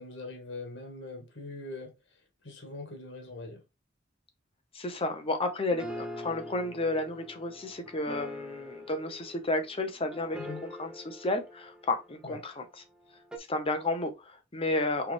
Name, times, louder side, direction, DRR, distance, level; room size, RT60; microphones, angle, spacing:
voice 1, 0.0-1.9 2.4-3.6 10.4-10.7 12.2-12.4, left 2 dB, 70° left, 1.8 m, -42 dB
voice 2, 4.7-12.6 13.5-15.1, left 2 dB, 30° left, 0.9 m, -32 dB
sound 1, 5.1-12.6 13.3-13.4, left 1 dB, 5° right, 0.6 m, -44 dB
4.5 x 3.4 x 3.4 m
head